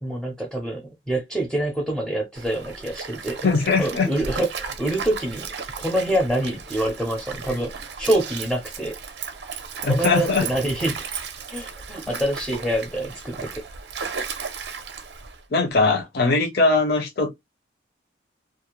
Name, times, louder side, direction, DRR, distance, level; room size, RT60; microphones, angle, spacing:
voice 1, 0.0-3.4 3.8-5.5 5.8-9.0 9.9-11.1 11.5-13.6, right 1 dB, ahead, 0.5 m, -26 dB
Stream, 2.3-15.4, right 5 dB, 60° right, 0.5 m, -35 dB
voice 2, 3.4-4.1 9.8-10.5 12.1-12.2 15.5-17.3, left 3 dB, 55° left, 0.6 m, -20 dB
2.5 x 2.0 x 2.9 m
head